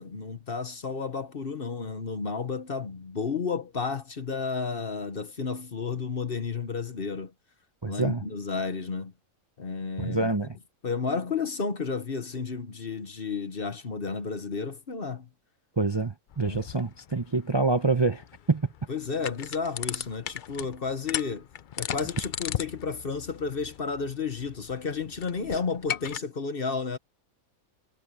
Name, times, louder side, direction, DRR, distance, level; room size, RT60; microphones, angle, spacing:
voice 1, 0.0-7.3 7.9-9.1 9.6-10.3 10.8-15.3 16.4-16.6 18.9-21.5 21.8-27.0, left 5 dB, 45° left, 1.3 m, -32 dB
voice 2, 7.8-8.2 10.0-10.5 15.8-18.7, right 3 dB, 25° right, 0.7 m, -26 dB
sound 1, 16.3-26.2, left 9 dB, 60° left, 0.5 m, -37 dB
omnidirectional pair, 1.5 m